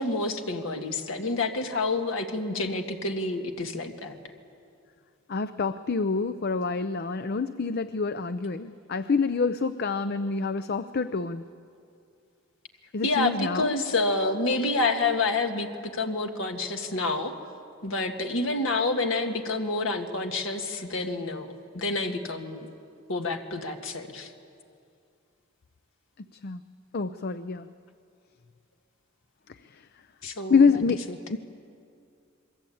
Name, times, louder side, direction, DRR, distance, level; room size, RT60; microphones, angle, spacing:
voice 1, 0.0-4.2 13.0-17.3 17.8-22.7 23.1-24.3 30.2-30.8, left 2 dB, 65° left, 4 dB, 1.8 m, -28 dB
voice 2, 5.3-11.4 12.9-13.7 26.2-26.6 26.9-27.7 29.7-29.9 30.5-31.0 31.3-31.4, left 4 dB, 50° left, 12 dB, 0.6 m, -26 dB
28.0 x 22.0 x 8.6 m, 2.4 s
head